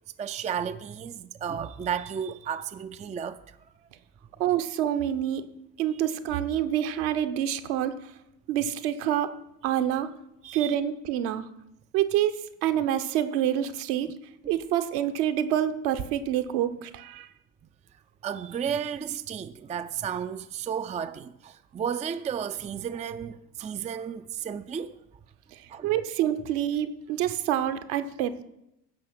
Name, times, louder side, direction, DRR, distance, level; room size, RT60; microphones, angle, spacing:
voice 1, 0.2-3.4 10.4-10.8 18.2-25.0 25.7-25.9, right 8 dB, 15° right, 0.5 m, -33 dB
voice 2, 4.4-5.5 5.8-8.0 8.5-9.3 9.6-10.1 10.5-11.4 11.9-14.1 14.5-17.3 25.5-28.4, right 11 dB, 60° right, 1.1 m, -27 dB
15.5 x 6.3 x 6.0 m
figure-of-eight pair, 55°, 47 cm